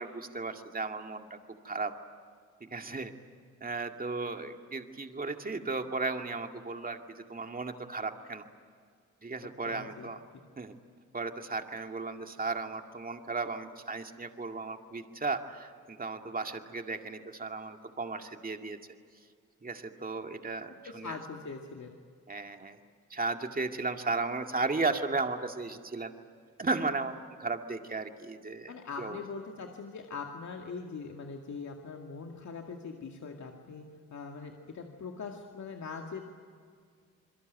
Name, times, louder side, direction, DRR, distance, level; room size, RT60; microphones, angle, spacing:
voice 1, 0.0-1.4 1.6-1.9 2.6-3.1 3.6-8.5 9.2-10.2 10.6-10.8 11.1-18.8 19.6-21.2 22.3-22.8 23.1-26.1 26.6-28.7 29.0-29.2, right 3 dB, 30° right, 5 dB, 2.2 m, -35 dB
voice 2, 9.7-10.1 20.9-21.9 28.7-33.9 34.1-36.2, left 4 dB, 65° left, 2 dB, 2.2 m, -42 dB
27.5 x 22.0 x 9.3 m, 2.1 s
cardioid pair, 70°, 31 cm